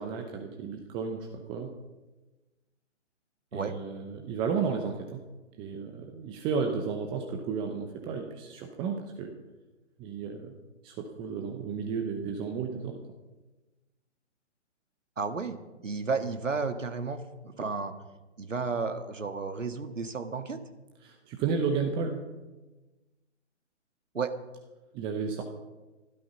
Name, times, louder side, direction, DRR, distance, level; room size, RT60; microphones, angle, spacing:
voice 1, 0.0-1.7 3.5-5.2 5.6-9.3 10.0-10.5 10.8-13.0 21.0-22.2 24.9-25.4, right 5 dB, 15° right, 4 dB, 0.8 m, -33 dB
voice 2, 15.2-15.6 15.8-17.9 18.4-20.6 24.1-24.3, right 4 dB, 85° right, 8 dB, 1.8 m, -32 dB
16.0 x 12.5 x 5.4 m, 1.1 s
figure-of-eight pair, 140°, 37 cm